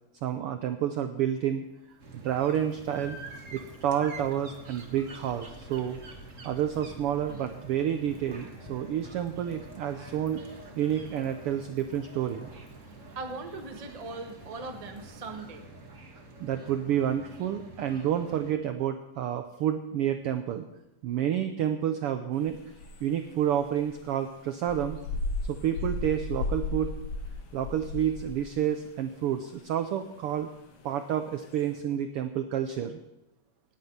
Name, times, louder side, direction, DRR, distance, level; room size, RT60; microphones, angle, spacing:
voice 1, 0.2-1.6 2.1-3.2 3.5-6.0 6.4-10.4 10.8-12.5 16.4-20.6 21.0-25.0 25.4-26.9 27.5-30.5 30.8-33.0, right 10 dB, 80° right, 8 dB, 1.2 m, -29 dB
Rain, 1.6-16.2, equal, 10° left, 4.3 m, -53 dB
sound 1, 2.0-18.5, right 2 dB, 35° right, 1.5 m, -47 dB
voice 2, 13.1-15.6, right 3 dB, 55° right, 4 dB, 0.4 m, -39 dB
sound 2, 22.4-31.8, left 3 dB, 85° left, 3.2 m, -36 dB
18.0 x 9.6 x 5.6 m, 0.95 s
omnidirectional pair, 3.4 m